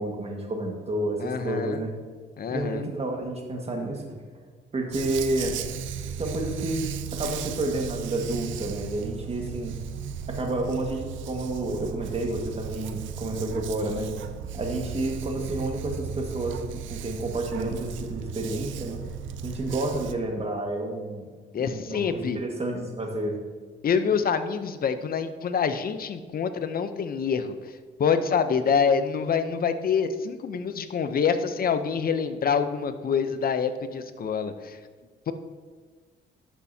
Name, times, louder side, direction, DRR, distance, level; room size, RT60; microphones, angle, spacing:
voice 1, 0.0-1.9 2.5-4.1 4.7-5.6 6.2-6.9 7.1-9.8 10.3-14.1 14.5-16.6 16.9-19.0 19.4-21.3 21.6-23.4, right 2 dB, 30° right, 1 dB, 1.7 m, -30 dB
voice 2, 1.2-1.8 2.4-2.9 21.5-22.4 23.8-34.8 35.3-35.4, left 6 dB, 50° left, 10 dB, 0.7 m, -26 dB
Dog, 4.9-20.1, right 7 dB, 75° right, 0.5 m, -36 dB
11.5 x 6.4 x 2.8 m, 1.5 s
cardioid pair, 90°, 20 cm